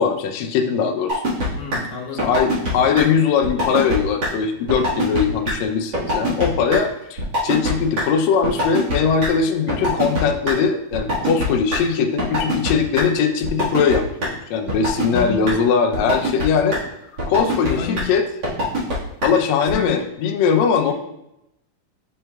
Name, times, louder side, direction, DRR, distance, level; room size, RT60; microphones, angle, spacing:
voice 1, 0.0-1.3 2.1-16.8 17.3-18.2 19.2-20.9, left 6 dB, 85° left, 4 dB, 1.5 m, -20 dB
sound 1, 1.1-1.5 1.7-1.8 2.2-2.7 3.0-3.1 3.4-4.0 4.2-4.3 4.7-5.2 5.5-5.6 5.9-6.5 6.7-6.8 7.2-7.7 8.0-8.1 8.4-9.3 9.7-10.5 10.9-11.8 12.2-12.7 13.0-13.1 13.4-13.9 14.2-14.3 14.7-15.2 15.5-15.6 15.9-16.4 16.7-16.8 17.2-17.7 18.0-18.1 18.4-18.9 19.2-19.3 19.7-19.8, right 1 dB, 40° right, 1.8 m, -22 dB
voice 2, 1.5-2.4 15.1-15.6 17.6-18.1 19.7-20.0 20.8-20.9, left 6 dB, 65° left, -3 dB, 2.5 m, -30 dB
7.8 x 5.4 x 2.3 m, 0.85 s
omnidirectional pair, 3.8 m